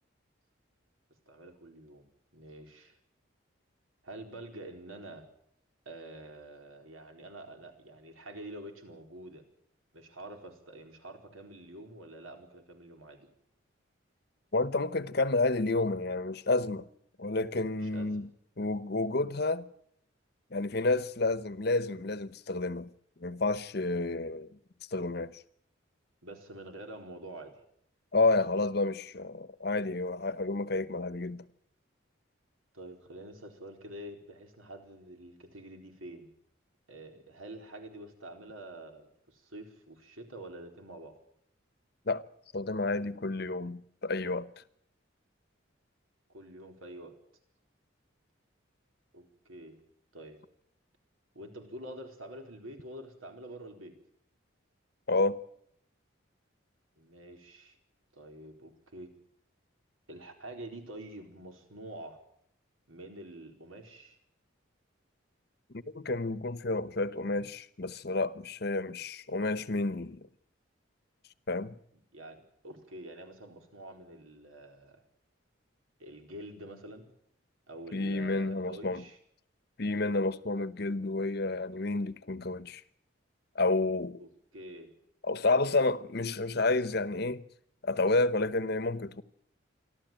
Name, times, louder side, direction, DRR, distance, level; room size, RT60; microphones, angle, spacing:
voice 1, 1.3-2.1 2.3-3.0 4.0-5.3 5.8-9.4 9.9-13.3 17.8-18.2 26.2-27.6 32.7-36.3 36.9-41.1 46.3-47.1 49.1-49.8 50.1-50.4 51.3-53.9 57.0-57.8 58.1-59.1 60.1-62.2 62.9-64.2 72.1-75.0 76.0-77.0 77.7-79.2 84.2-84.3 84.5-84.9, right 1 dB, 90° right, 4.4 m, -47 dB
voice 2, 14.5-16.9 17.2-18.3 18.6-19.7 20.5-22.9 23.2-24.5 24.9-25.4 28.1-31.4 42.1-42.2 42.5-44.5 55.1-55.4 65.7-70.3 71.5-71.8 77.9-79.0 79.8-82.8 83.5-84.2 85.2-87.4 87.8-89.2, left 2 dB, 50° left, 0.9 m, -30 dB
27.5 x 12.5 x 9.1 m
head